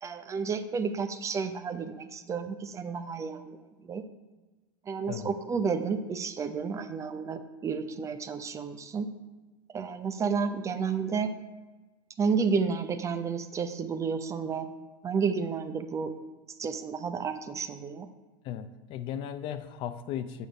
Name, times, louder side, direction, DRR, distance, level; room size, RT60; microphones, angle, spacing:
voice 1, 0.0-4.0 4.9-9.1 9.7-11.3 12.2-14.7 15.0-16.1 16.6-18.1, right 5 dB, 25° right, 9 dB, 0.6 m, -31 dB
voice 2, 18.4-20.5, left 9 dB, 45° left, 11 dB, 0.5 m, -36 dB
8.2 x 5.0 x 5.0 m, 1.2 s
hypercardioid pair, 90°, 12 cm